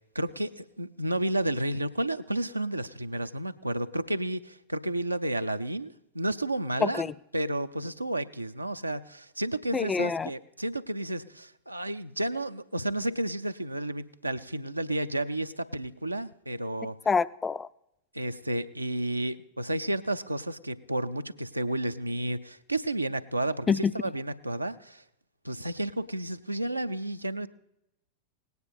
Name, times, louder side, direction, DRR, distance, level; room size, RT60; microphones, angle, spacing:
voice 1, 0.1-17.0 18.1-25.0 25.4-27.5, right 1 dB, 85° right, 10 dB, 0.5 m, -31 dB
voice 2, 9.7-10.3 17.1-17.7 23.7-23.8, left 5 dB, 15° left, 17 dB, 0.4 m, -26 dB
18.0 x 9.5 x 4.3 m, 0.82 s
figure-of-eight pair, 90°, 0 cm